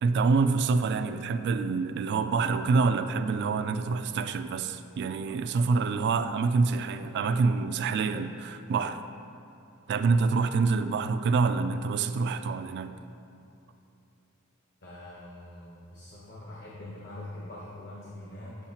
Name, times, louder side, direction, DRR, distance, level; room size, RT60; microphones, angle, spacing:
voice 1, 0.0-9.0 9.9-12.9, right 4 dB, 55° right, 10 dB, 0.3 m, -26 dB
voice 2, 14.8-18.6, left 1 dB, 55° left, -6 dB, 1.1 m, -43 dB
8.0 x 7.2 x 2.8 m, 2.7 s
head